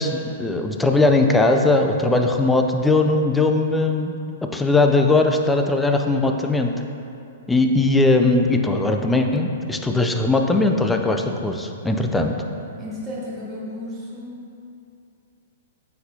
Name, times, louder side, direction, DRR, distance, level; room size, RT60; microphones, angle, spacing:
voice 1, 0.0-4.1 4.5-6.7 7.5-12.3, left 2 dB, 5° left, 4 dB, 0.4 m, -19 dB
voice 2, 12.8-14.4, left 1 dB, 15° right, -7 dB, 1.1 m, -33 dB
9.4 x 4.3 x 2.7 m, 2.6 s
hypercardioid pair, 140°, 0 cm